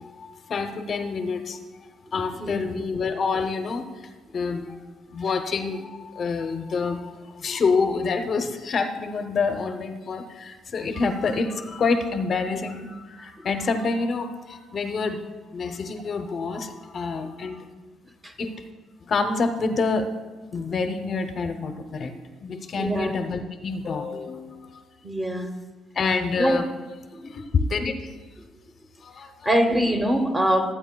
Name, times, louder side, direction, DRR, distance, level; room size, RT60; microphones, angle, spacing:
voice 1, 0.0-3.8 4.3-4.8 5.1-17.7 18.4-18.6 19.1-20.1 20.5-22.1 22.4-24.8 25.9-26.6 27.2-28.1 29.0-29.3, left 4 dB, 40° left, 7 dB, 0.6 m, -27 dB
voice 2, 2.1-2.7 4.5-4.6 18.2-18.3 22.1-22.2 22.8-23.2 25.0-25.5 26.3-26.6 27.1-27.3 29.4-30.7, equal, 15° right, 6 dB, 0.9 m, -24 dB
21.5 x 8.9 x 2.2 m, 1.3 s
cardioid pair, 140°, 0 cm